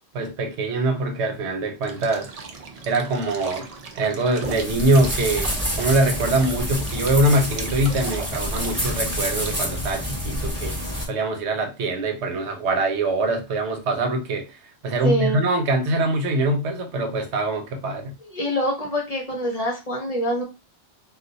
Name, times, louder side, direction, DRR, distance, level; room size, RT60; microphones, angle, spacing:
voice 1, 0.1-2.3 2.9-3.7 4.0-5.5 5.8-10.8 11.1-14.6 14.8-18.1, right 2 dB, 80° right, 1.0 m, -23 dB
sound 1, 1.8-9.6, right 4 dB, 50° right, 0.5 m, -38 dB
sound 2, 4.4-11.1, equal, 10° right, 1.2 m, -28 dB
voice 2, 15.0-15.4 18.3-20.4, equal, 40° left, 0.8 m, -25 dB
2.4 x 2.3 x 3.9 m
omnidirectional pair, 1.2 m